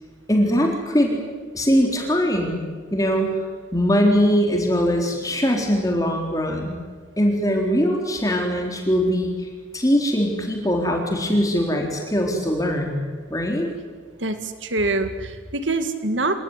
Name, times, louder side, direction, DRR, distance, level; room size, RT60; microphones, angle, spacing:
voice 1, 0.3-1.2 1.5-2.6 2.9-3.3 3.7-6.8 7.2-9.5 9.7-13.0 13.3-13.7, equal, 20° left, 1 dB, 4.1 m, -21 dB
voice 2, 14.2-16.4, right 2 dB, 85° right, 8 dB, 2.3 m, -25 dB
28.0 x 18.5 x 9.9 m, 1.5 s
head